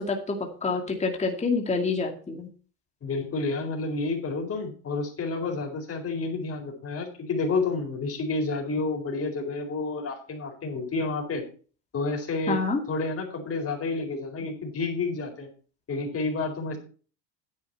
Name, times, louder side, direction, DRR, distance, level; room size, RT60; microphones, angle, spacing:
voice 1, 0.0-2.5 12.5-12.8, left 4 dB, 15° left, 1 dB, 2.3 m, -27 dB
voice 2, 3.0-11.4 11.9-12.6 12.9-15.5 15.9-16.8, left 3 dB, 30° left, 2 dB, 4.6 m, -30 dB
10.0 x 9.9 x 4.3 m, 0.38 s
supercardioid pair, 125°, 45 cm